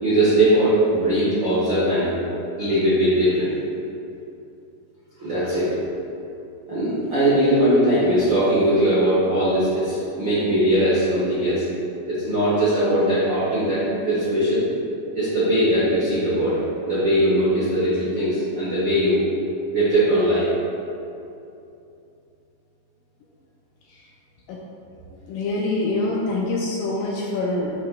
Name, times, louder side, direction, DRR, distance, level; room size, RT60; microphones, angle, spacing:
voice 1, 0.0-2.1 2.6-3.5 5.2-5.7 6.7-11.6 12.1-14.6 15.1-16.6 16.8-19.2 19.7-20.5, right 1 dB, 85° right, -10 dB, 1.0 m, -20 dB
voice 2, 25.3-27.7, left 2 dB, 85° left, -3 dB, 2.0 m, -25 dB
9.5 x 5.9 x 2.3 m, 2.7 s
omnidirectional pair, 4.4 m